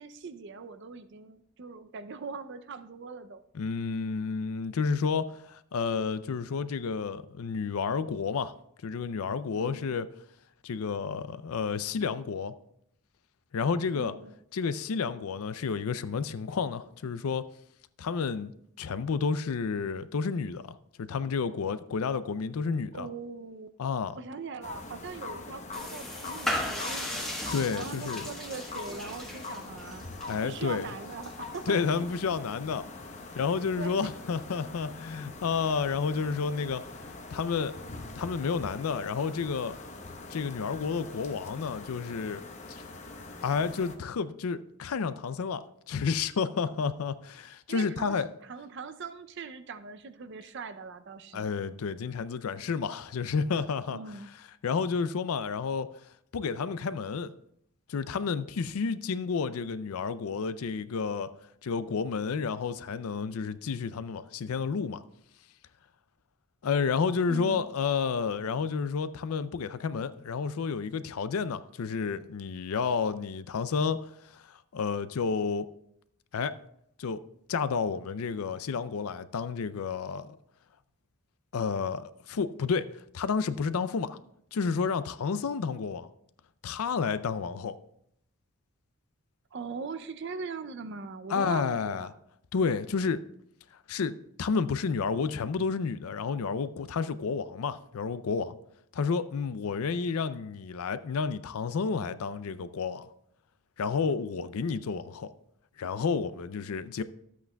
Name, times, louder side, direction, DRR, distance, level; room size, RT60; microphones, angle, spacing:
voice 1, 0.0-3.4 9.5-10.0 13.9-14.3 22.9-23.7 24.2-27.4 27.7-30.0 30.4-31.8 33.8-34.1 47.7-48.2 48.5-51.5 53.9-54.3 67.3-67.7 89.5-92.1, right 4 dB, 50° right, 0.5 m, -41 dB
voice 2, 3.5-8.5 8.8-10.1 10.6-12.5 13.5-14.1 14.5-17.5 18.0-18.5 18.8-23.1 23.8-24.2 27.5-28.3 30.3-30.9 31.7-32.9 33.4-37.7 38.2-39.8 40.3-42.4 42.7-42.8 43.4-48.3 51.3-54.0 54.6-55.9 56.3-57.3 57.9-61.3 61.6-65.0 66.6-75.7 76.3-76.5 77.0-77.2 77.5-80.4 81.5-82.9 83.1-84.2 84.5-86.1 86.6-87.8 91.3-92.1 92.5-93.2 93.9-98.6 98.9-103.1 103.8-105.3 105.8-107.0, left 5 dB, 80° left, 0.4 m, -30 dB
sound 1, 24.6-44.0, left 3 dB, 30° left, 0.8 m, -43 dB
sound 2, 25.7-32.4, left 1 dB, ahead, 1.2 m, -37 dB
12.5 x 8.3 x 2.3 m
head